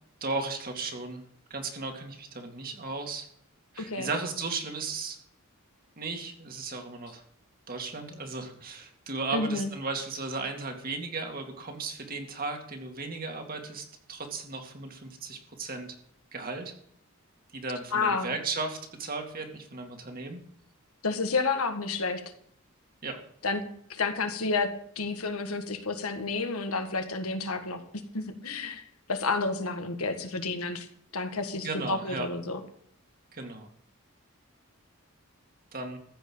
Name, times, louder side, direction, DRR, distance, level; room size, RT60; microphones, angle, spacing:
voice 1, 0.2-1.2 1.5-3.3 3.7-5.2 6.0-7.2 7.7-15.9 16.3-16.7 17.5-20.4 23.0-23.2 31.5-32.3 33.3-33.7 35.7-36.0, right 3 dB, 40° right, 3 dB, 2.3 m, -35 dB
voice 2, 9.3-9.7 17.9-18.4 21.0-22.2 23.4-23.6 23.9-24.7 25.0-28.8 29.1-30.9 31.1-32.6, left 3 dB, 80° left, 7 dB, 1.7 m, -30 dB
14.5 x 5.6 x 8.7 m, 0.66 s
head